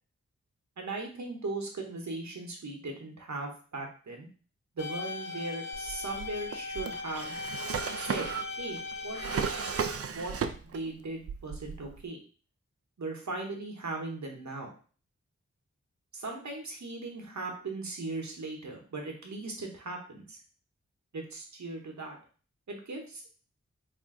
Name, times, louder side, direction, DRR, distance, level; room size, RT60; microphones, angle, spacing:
voice 1, 0.8-4.3 4.7-7.4 8.0-8.3 8.6-8.8 9.0-9.5 10.1-10.3 10.7-12.2 13.0-14.7 16.1-20.4 21.1-22.2 22.7-23.2, right 2 dB, 70° right, 1 dB, 1.0 m, -38 dB
sound 1, 4.8-9.8, left 3 dB, 65° left, 0.8 m, -39 dB
Drawer open or close, 5.7-10.9 11.2-12.0, right 6 dB, 55° right, 0.4 m, -35 dB
3.6 x 2.5 x 3.7 m, 0.39 s
cardioid pair, 45°, 29 cm